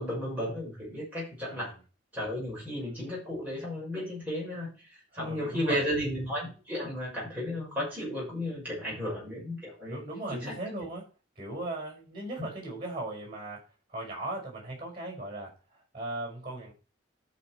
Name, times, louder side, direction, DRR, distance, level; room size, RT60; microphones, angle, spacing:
voice 1, 0.0-1.7 2.1-10.0 10.3-10.5, equal, 10° right, -6 dB, 6.1 m, -34 dB
voice 2, 1.4-1.8 5.1-5.8 9.9-11.1 11.4-16.7, right 2 dB, 25° right, 1 dB, 5.8 m, -38 dB
13.5 x 5.1 x 4.7 m, 0.34 s
head